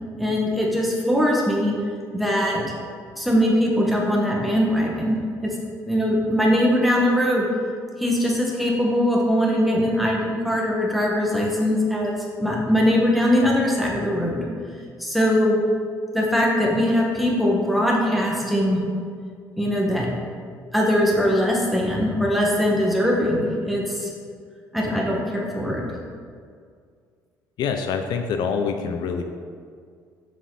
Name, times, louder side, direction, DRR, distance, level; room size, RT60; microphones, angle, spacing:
voice 1, 0.2-1.7 2.1-2.7 3.2-5.5 5.8-7.4 8.0-14.4 15.0-15.6 16.1-18.8 19.6-20.1 20.7-24.1 24.7-25.8, equal, ahead, -3 dB, 1.7 m, -21 dB
voice 2, 27.6-29.2, left 6 dB, 70° left, 6 dB, 0.5 m, -25 dB
7.2 x 5.7 x 4.1 m, 2.1 s
cardioid pair, 100°, 7 cm